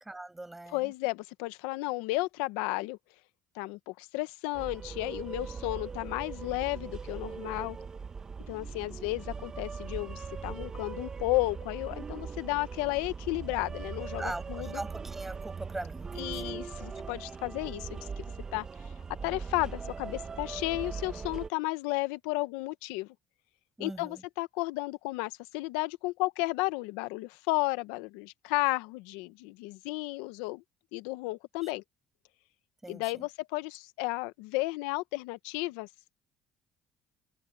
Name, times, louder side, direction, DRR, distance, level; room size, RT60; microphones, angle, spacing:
voice 1, 0.0-0.9 14.2-17.2 23.8-24.2 32.8-33.2, right 2 dB, 10° right, 6.6 m, -41 dB
voice 2, 0.7-3.0 3.5-7.8 8.5-14.7 16.2-18.2 18.5-18.6 19.2-23.1 23.8-30.6 30.9-31.8 32.9-35.9, left 21 dB, 85° left, 1.0 m, -33 dB
sound 1, 4.5-21.5, right 5 dB, 30° right, 1.1 m, -40 dB
supercardioid pair, 80°, 2 cm